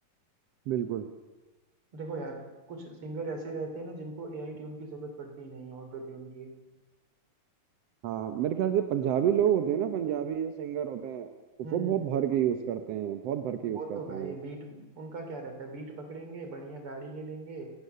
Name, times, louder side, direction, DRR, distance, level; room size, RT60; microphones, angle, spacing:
voice 1, 0.7-1.1 8.0-11.3 11.7-14.4, right 10 dB, 65° right, 7 dB, 1.7 m, -29 dB
voice 2, 1.9-6.5 11.6-12.0 13.7-17.7, right 3 dB, 40° right, 5 dB, 3.8 m, -40 dB
29.0 x 18.0 x 6.8 m, 1.2 s
omnidirectional pair, 3.8 m